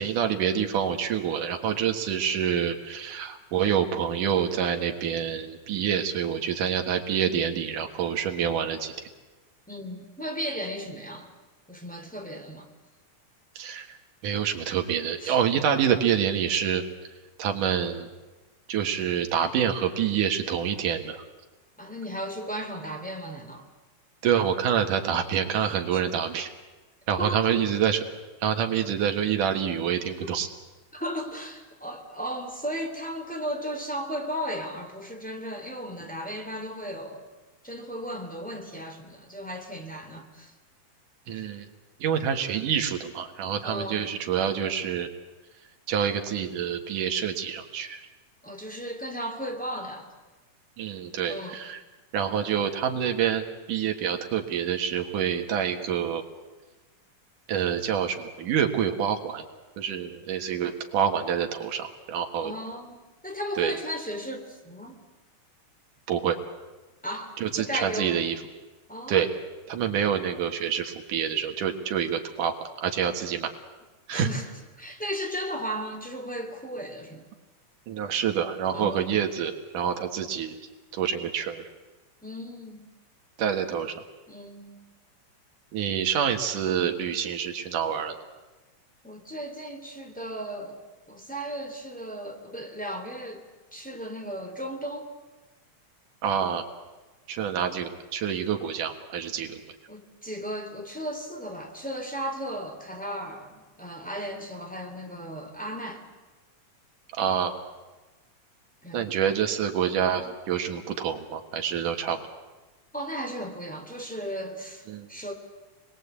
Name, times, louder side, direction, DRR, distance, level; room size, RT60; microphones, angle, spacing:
voice 1, 0.0-9.1 13.6-13.9 14.2-16.8 17.4-18.1 18.7-21.2 24.2-26.5 27.1-28.0 28.4-30.5 41.3-41.7 42.0-45.1 45.9-48.0 50.8-51.8 52.1-56.2 57.5-59.4 59.8-62.5 63.6-63.7 66.1-66.4 67.4-68.3 69.1-69.3 69.7-73.5 74.1-74.3 77.9-80.6 80.9-81.6 83.4-83.9 85.7-88.2 96.2-96.6 97.3-99.6 107.1-107.5 108.9-112.2 114.9-115.1, right 8 dB, 80° right, 5 dB, 3.2 m, -27 dB
voice 2, 9.7-11.3 11.7-12.7 15.2-15.4 21.8-23.7 25.9-26.0 27.2-27.7 30.2-30.4 30.9-37.3 37.6-40.5 43.6-44.1 48.4-50.1 51.2-51.6 62.4-65.0 67.0-68.2 68.9-69.3 74.1-74.5 74.8-77.3 78.7-79.1 82.2-82.9 84.3-84.8 89.0-90.8 91.1-95.1 99.9-106.1 108.8-109.1 110.2-110.3 112.9-115.3, equal, 5° left, 2 dB, 3.0 m, -35 dB
28.5 x 21.5 x 8.4 m, 1.2 s
omnidirectional pair, 3.6 m